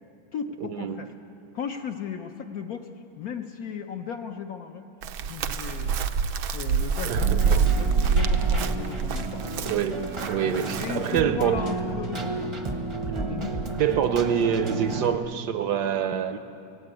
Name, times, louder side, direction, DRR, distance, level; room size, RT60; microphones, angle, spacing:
voice 1, 0.3-1.1 1.5-2.9 3.2-4.9 5.2-6.0 6.4-9.5 10.8-12.5 13.2-13.6, left 7 dB, 60° left, 5 dB, 1.0 m, -36 dB
Chirp tweet, 5.0-11.2, right 5 dB, 85° right, 1.6 m, -25 dB
voice 2, 7.1-7.6 9.7-11.7 13.0-13.4 13.8-16.4, right 8 dB, 65° right, 9 dB, 1.1 m, -26 dB
Keyboard (musical), 7.2-15.2, right 3 dB, 25° right, 0.6 m, -32 dB
17.0 x 16.5 x 9.7 m, 2.7 s
omnidirectional pair, 2.2 m